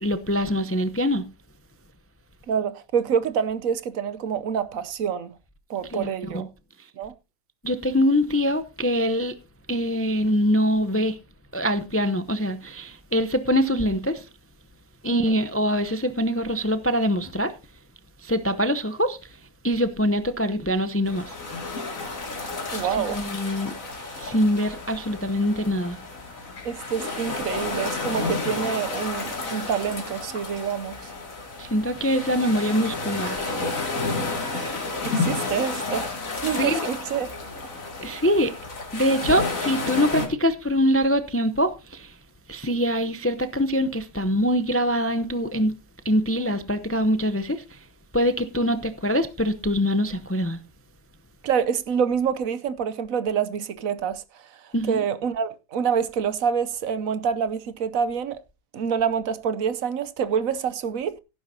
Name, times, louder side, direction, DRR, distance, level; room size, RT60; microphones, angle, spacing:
voice 1, 0.0-1.3 5.9-6.5 7.6-9.4 9.7-11.2 11.5-14.3 15.0-17.5 18.2-21.4 22.8-23.7 24.2-26.0 31.6-33.5 36.4-36.9 38.0-38.5 38.9-42.2 42.5-45.7 46.0-47.9 48.1-50.6 54.7-55.0, equal, 15° left, 0.4 m, -24 dB
voice 2, 2.5-5.3 5.7-6.5 7.0-7.1 15.1-15.3 22.7-23.2 26.6-31.1 34.5-34.8 35.0-36.1 36.4-37.3 46.4-46.5 51.4-54.2 54.6-58.4 58.7-61.2, right 7 dB, 65° right, 1.2 m, -27 dB
sound 1, 21.1-40.3, left 3 dB, 60° left, 2.8 m, -31 dB
16.5 x 9.6 x 2.8 m
omnidirectional pair, 1.6 m